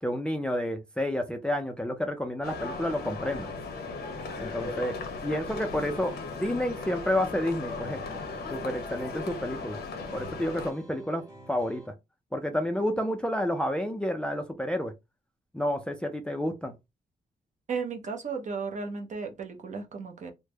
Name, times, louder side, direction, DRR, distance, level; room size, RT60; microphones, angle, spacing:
voice 1, 0.0-3.5 4.4-4.9 5.2-8.0 8.5-9.8 10.1-11.9 12.3-14.9 15.5-16.7, left 1 dB, 5° left, 0.4 m, -30 dB
sound 1, 2.4-10.7, left 4 dB, 85° left, 0.8 m, -37 dB
sound 2, 5.9-11.9, right 1 dB, 25° right, 1.1 m, -50 dB
voice 2, 17.7-20.3, right 5 dB, 50° right, 0.8 m, -34 dB
3.3 x 2.1 x 3.3 m
wide cardioid pair, 150°, 16 cm